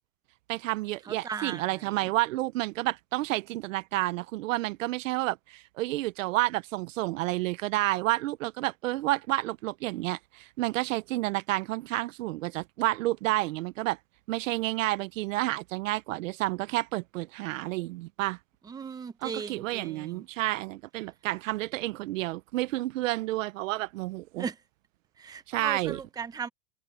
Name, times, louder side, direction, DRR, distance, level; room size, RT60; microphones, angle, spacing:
voice 1, 0.5-14.0 14.3-18.4 19.2-24.5 25.5-26.0, right 18 dB, 70° right, 0.8 m, -30 dB
voice 2, 1.1-2.1 18.7-20.2 24.4-24.6 25.2-26.5, right 6 dB, 10° right, 0.9 m, -37 dB
supercardioid pair, 160°, 40 cm